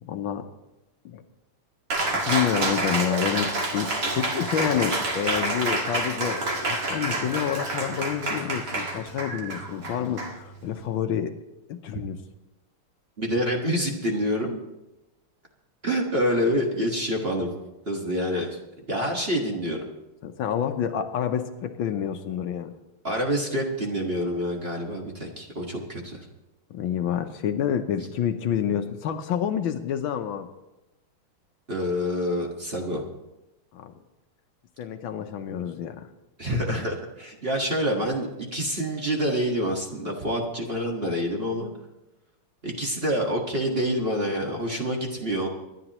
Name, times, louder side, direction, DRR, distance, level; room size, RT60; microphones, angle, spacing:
voice 1, 0.0-0.5 1.0-1.2 2.1-11.3 11.7-12.2 20.2-22.7 26.7-30.5 33.7-33.9 34.8-36.1, left 9 dB, 75° left, 7 dB, 1.5 m, -28 dB
Cheering, 1.9-10.9, right 2 dB, 55° right, 2.5 m, -28 dB
voice 2, 13.2-14.6 15.8-17.5 17.9-18.6 18.9-19.8 23.0-26.2 31.7-33.0 36.4-41.7 42.6-45.5, equal, 30° right, 0 dB, 1.6 m, -27 dB
26.0 x 11.0 x 3.0 m, 0.97 s
omnidirectional pair, 2.4 m